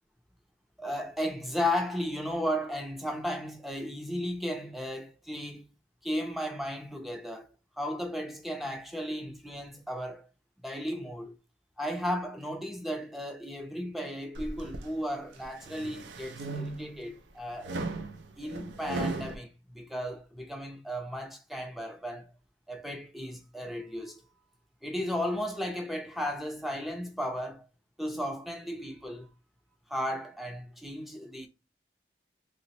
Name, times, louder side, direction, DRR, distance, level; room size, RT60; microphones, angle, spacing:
voice 1, 0.8-5.7 6.0-7.5 7.8-10.3 10.6-11.3 11.8-17.7 18.4-22.3 22.7-24.2 24.8-27.7 28.0-29.3 29.9-31.5, equal, ahead, 0.4 m, -35 dB
sound 1, 14.3-14.9 15.4-17.0 17.6-19.4, right 3 dB, 85° right, 0.5 m, -36 dB
3.0 x 2.1 x 4.0 m
head